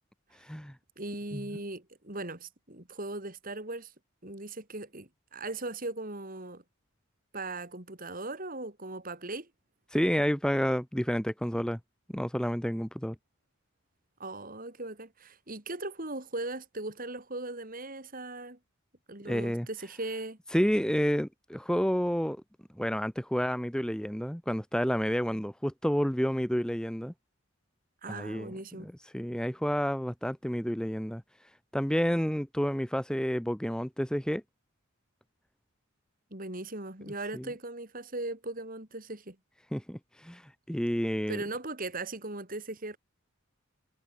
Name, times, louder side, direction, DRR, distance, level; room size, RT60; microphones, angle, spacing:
voice 1, 0.4-0.7 1.3-1.4 9.9-11.8 12.1-13.1 19.2-19.7 20.5-22.4 22.8-27.1 28.1-28.5 28.8-31.2 31.7-34.4 37.3-37.4 39.7-41.4, equal, 5° left, 1.4 m, -30 dB
voice 2, 1.0-3.9 4.2-6.6 7.3-9.5 14.2-18.6 19.1-20.4 28.0-28.9 36.3-39.4 41.3-43.0, right 2 dB, 40° right, 3.5 m, -38 dB
head